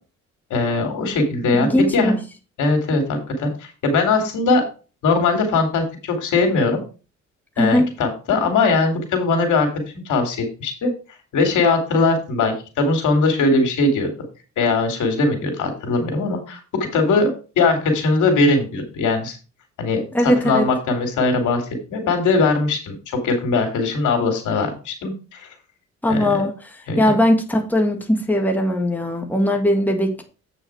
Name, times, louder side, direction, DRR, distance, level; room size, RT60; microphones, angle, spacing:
voice 1, 0.5-1.7 1.9-2.1 2.6-4.6 5.0-6.8 7.6-9.7 10.0-10.9 11.3-14.1 14.6-19.4 19.8-21.6 21.9-22.9 23.2-25.5 26.1-26.5 26.9-27.1, left 3 dB, 80° left, 4 dB, 3.0 m, -20 dB
voice 2, 1.5-2.2 7.6-7.9 20.1-20.7 26.0-26.5 27.0-30.2, left 1 dB, 5° left, 2 dB, 1.8 m, -19 dB
8.5 x 5.6 x 4.7 m, 0.33 s
cardioid pair, 90°, 30 cm